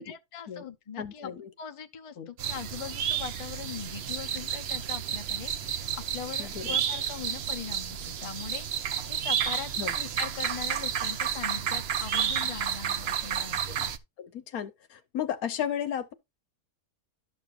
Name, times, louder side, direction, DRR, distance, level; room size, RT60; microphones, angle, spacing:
voice 1, 0.0-1.3 1.6-13.6, left 8 dB, 35° left, 0.5 m, -41 dB
voice 2, 1.0-1.5 2.2-2.3 6.4-6.8 9.8-9.9 13.7-13.9 14.2-16.1, left 9 dB, 75° left, 1.3 m, -34 dB
sound 1, 2.4-14.0, right 8 dB, 60° right, 0.7 m, -31 dB
12.0 x 6.5 x 2.5 m
omnidirectional pair, 1.6 m